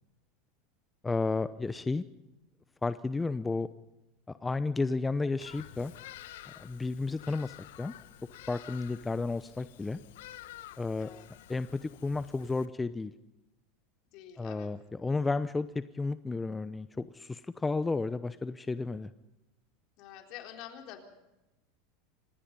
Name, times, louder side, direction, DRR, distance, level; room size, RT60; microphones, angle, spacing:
voice 1, 1.0-2.0 2.8-3.7 4.3-5.9 6.6-7.9 8.5-10.0 10.8-11.1 11.5-13.1 14.4-19.1, left 3 dB, 15° left, 13 dB, 0.8 m, -32 dB
Bird vocalization bird call bird song, 5.4-12.7, left 13 dB, 75° left, 1.2 m, -50 dB
voice 2, 10.9-11.3 14.1-14.7 15.2-15.3 20.0-21.0, left 11 dB, 60° left, 4 dB, 4.0 m, -47 dB
25.5 x 20.0 x 5.4 m, 0.97 s
hypercardioid pair, 90°, 0 cm